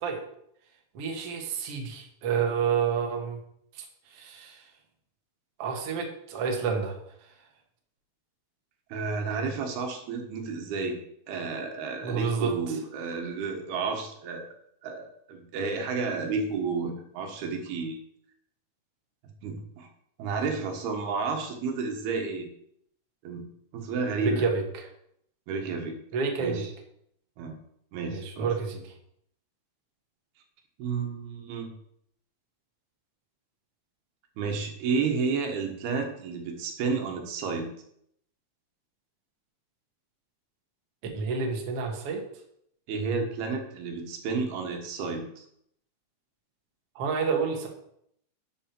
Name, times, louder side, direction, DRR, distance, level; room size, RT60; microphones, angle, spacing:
voice 1, 0.9-3.4 3.8-3.9 4.1-4.6 5.6-7.0 12.0-12.8 24.2-24.8 26.1-26.7 28.1-28.8 41.1-42.2 47.0-47.7, right 5 dB, 50° right, 2 dB, 2.0 m, -29 dB
voice 2, 8.9-11.0 11.3-14.5 14.8-18.0 19.4-19.9 20.2-22.5 23.2-23.4 23.7-24.5 25.5-26.0 26.4-26.7 27.4-27.6 27.9-28.5 30.8-31.7 34.4-37.7 42.9-45.4, right 4 dB, 85° right, 3 dB, 3.4 m, -31 dB
11.5 x 6.6 x 4.5 m, 0.71 s
omnidirectional pair, 4.4 m